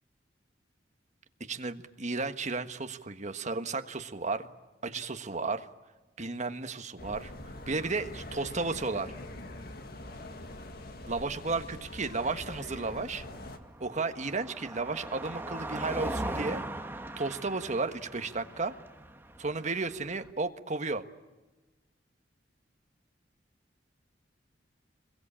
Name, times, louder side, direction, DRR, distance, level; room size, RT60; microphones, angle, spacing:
voice 1, 1.4-4.5 4.8-5.7 6.2-7.3 7.7-9.1 11.0-13.2 13.8-16.6 17.2-18.7 19.4-21.0, right 3 dB, 40° right, 7 dB, 1.4 m, -33 dB
sound 1, 7.0-13.6, left 1 dB, 55° left, 2.0 m, -44 dB
Car passing by, 12.2-20.3, right 1 dB, 10° right, 1.3 m, -40 dB
26.5 x 22.0 x 8.7 m, 1.2 s
head